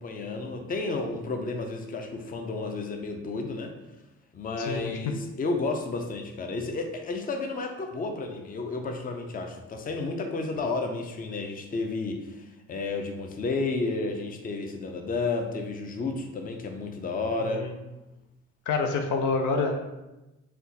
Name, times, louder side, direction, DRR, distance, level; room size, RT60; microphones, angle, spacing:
voice 1, 0.0-3.7 4.3-17.7, left 3 dB, 30° left, 4 dB, 0.5 m, -32 dB
voice 2, 4.6-4.9 17.4-17.7 18.7-19.8, left 4 dB, 80° left, 4 dB, 0.6 m, -27 dB
4.2 x 2.4 x 3.9 m, 1.0 s
cardioid pair, 115°, 30 cm